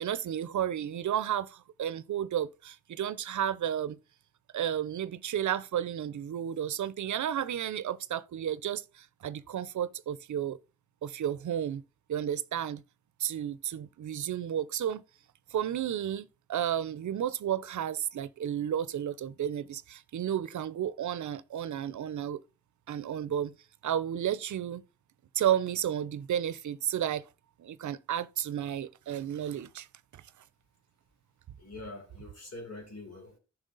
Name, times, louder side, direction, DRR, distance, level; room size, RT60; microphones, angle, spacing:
voice 1, 0.0-4.0 4.5-10.6 11.0-11.8 12.1-12.8 13.2-15.0 15.5-22.4 22.9-23.5 23.8-24.8 25.3-27.2 27.6-29.9, right 10 dB, 85° right, 0.5 m, -32 dB
voice 2, 31.6-33.4, left 2 dB, 60° left, 4.0 m, -44 dB
10.0 x 6.0 x 3.9 m
cardioid pair, 65°, 29 cm